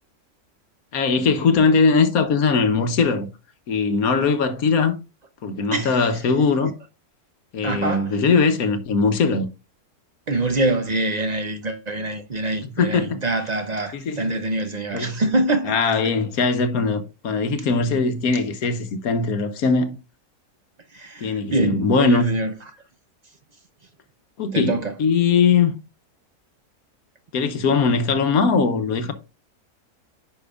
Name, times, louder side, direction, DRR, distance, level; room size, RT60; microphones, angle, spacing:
voice 1, 0.9-3.3 3.7-5.0 5.4-6.8 7.5-9.5 12.6-13.2 13.9-14.3 14.9-15.2 15.6-20.0 21.2-22.4 24.4-25.7 27.3-29.1, left 4 dB, 70° left, 1.3 m, -20 dB
voice 2, 5.7-6.0 7.6-8.2 10.3-15.8 20.9-22.5 24.5-25.0, right 2 dB, 55° right, 0.4 m, -25 dB
10.0 x 5.2 x 2.3 m
omnidirectional pair, 1.6 m